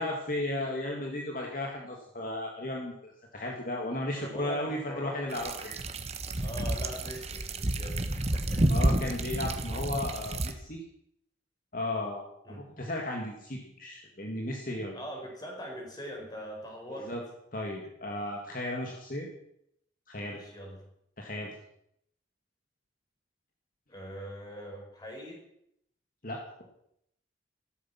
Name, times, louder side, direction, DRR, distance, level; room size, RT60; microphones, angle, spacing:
voice 1, 0.0-5.8 8.6-10.8 11.7-12.3 12.8-15.0 17.1-17.2 17.5-19.3 20.1-20.4 21.2-21.5 26.2-26.4, left 1 dB, 45° left, 0 dB, 2.1 m, -35 dB
voice 2, 4.1-5.4 6.4-8.6 12.4-12.6 14.9-17.1 20.2-20.8 23.9-25.4, equal, 20° left, 0 dB, 4.9 m, -42 dB
sound 1, 5.3-10.5, right 1 dB, 35° right, 1.2 m, -30 dB
15.5 x 14.0 x 5.9 m, 0.75 s
head